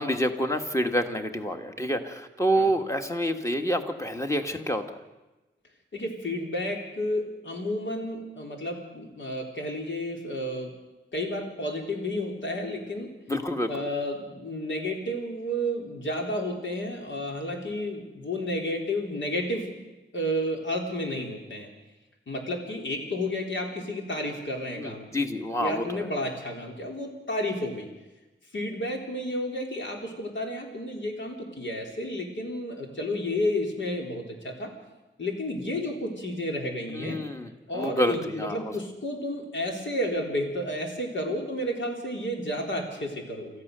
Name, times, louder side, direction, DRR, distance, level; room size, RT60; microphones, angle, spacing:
voice 1, 0.0-5.0 13.3-13.9 24.8-26.1 36.9-38.8, equal, 15° left, 5 dB, 1.6 m, -28 dB
voice 2, 5.9-10.7 11.1-13.1 13.7-19.7 20.1-21.7 22.3-25.1 25.6-27.9 28.5-34.7 35.2-37.2 37.7-43.6, left 1 dB, 75° left, 1 dB, 3.9 m, -31 dB
27.0 x 14.5 x 6.8 m, 1.1 s
wide cardioid pair, 120°, 20 cm